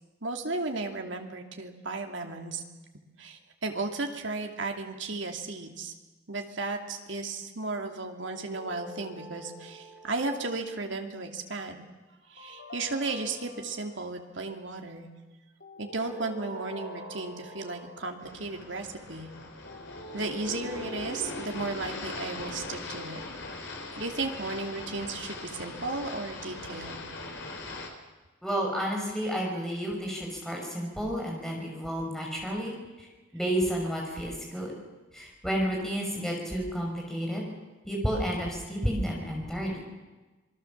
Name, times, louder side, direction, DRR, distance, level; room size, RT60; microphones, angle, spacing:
voice 1, 0.2-2.6 3.2-5.9 6.3-11.8 12.3-15.1 15.8-19.3 20.1-23.2 24.0-27.1, right 3 dB, 70° right, 3 dB, 2.6 m, -34 dB
sound 1, 8.2-10.7 12.4-14.2 15.6-18.3 19.7-24.2, left 1 dB, 55° left, 2.8 m, -44 dB
sound 2, 18.2-27.9, left 2 dB, 75° left, 4.0 m, -41 dB
voice 2, 28.4-33.1 33.3-34.7 35.1-37.4 37.9-39.9, equal, ahead, -1 dB, 5.3 m, -31 dB
26.5 x 21.0 x 7.3 m, 1.2 s
head